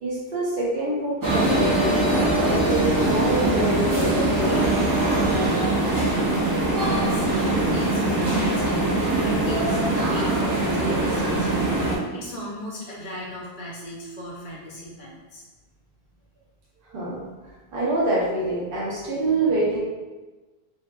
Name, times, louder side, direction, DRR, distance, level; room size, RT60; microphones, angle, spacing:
voice 1, 0.0-4.6 16.9-17.2 17.7-19.8, right 2 dB, 60° right, -7 dB, 0.8 m, -26 dB
sound 1, 1.2-12.0, right 2 dB, 30° right, 0.4 m, -22 dB
voice 2, 6.8-15.4, left 1 dB, 55° left, -5 dB, 0.8 m, -36 dB
2.5 x 2.5 x 2.3 m, 1.2 s
omnidirectional pair, 1.1 m